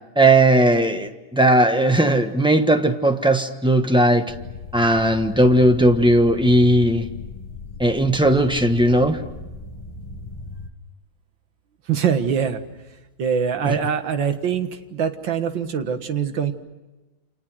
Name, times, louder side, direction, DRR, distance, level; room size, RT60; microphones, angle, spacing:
voice 1, 0.1-4.3 4.7-7.1 7.8-9.2 13.6-13.7, right 1 dB, 5° right, 6 dB, 0.9 m, -17 dB
sound 1, 4.3-10.7, left 3 dB, 15° left, 1.4 m, -37 dB
voice 2, 11.9-12.6 13.2-16.5, right 7 dB, 60° right, 8 dB, 2.1 m, -23 dB
29.0 x 27.5 x 6.3 m, 1.1 s
omnidirectional pair, 2.4 m